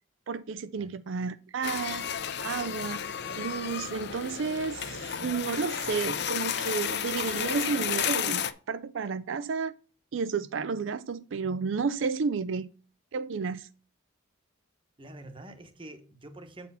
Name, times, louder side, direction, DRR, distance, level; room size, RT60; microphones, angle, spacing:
voice 1, 0.3-2.0 2.4-3.0 3.4-9.7 10.1-12.7 13.1-13.7, right 5 dB, 70° right, 0.4 m, -32 dB
sound 1, 1.6-8.5, left 8 dB, 55° left, 0.6 m, -32 dB
voice 2, 15.0-16.7, right 1 dB, 25° right, 1.0 m, -46 dB
8.1 x 4.3 x 5.5 m
head